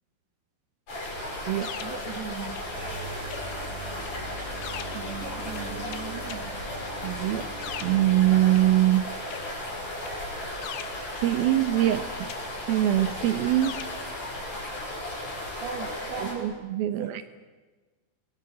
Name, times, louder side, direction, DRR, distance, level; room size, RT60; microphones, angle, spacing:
sound 1, 0.9-16.3, left 1 dB, 45° left, 7.6 m, -35 dB
sound 2, 1.1-3.0 3.3-9.0 9.3-11.6 11.9-14.2, left 10 dB, 70° left, 2.1 m, -44 dB
voice 1, 1.8-2.6 4.9-6.5 15.6-17.2, right 7 dB, 55° right, 3 dB, 2.3 m, -38 dB
sound 3, 2.7-8.9, right 2 dB, 35° right, 2.7 m, -42 dB
voice 2, 7.0-7.5 7.8-9.1 11.2-12.1 12.7-13.8 16.4-17.2, right 13 dB, 75° right, 10 dB, 2.5 m, -23 dB
25.0 x 20.0 x 8.5 m, 1.3 s
omnidirectional pair, 5.0 m